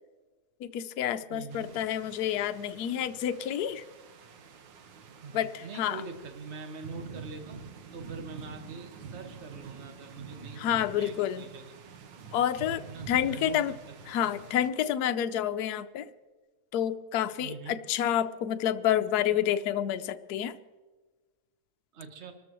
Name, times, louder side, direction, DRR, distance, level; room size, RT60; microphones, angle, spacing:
voice 1, 0.6-3.8 5.3-6.0 10.6-11.4 12.3-12.8 13.1-13.7 14.1-16.0 16.7-20.5, left 10 dB, 65° left, 10 dB, 1.0 m, -29 dB
voice 2, 1.3-1.8 5.1-7.7 7.9-11.8 12.9-14.4 17.4-17.8 21.9-22.3, right 4 dB, 35° right, 5 dB, 1.5 m, -44 dB
sound 1, 1.5-14.7, right 5 dB, 65° right, 1.7 m, -47 dB
25.0 x 13.5 x 3.1 m, 1.3 s
omnidirectional pair, 2.2 m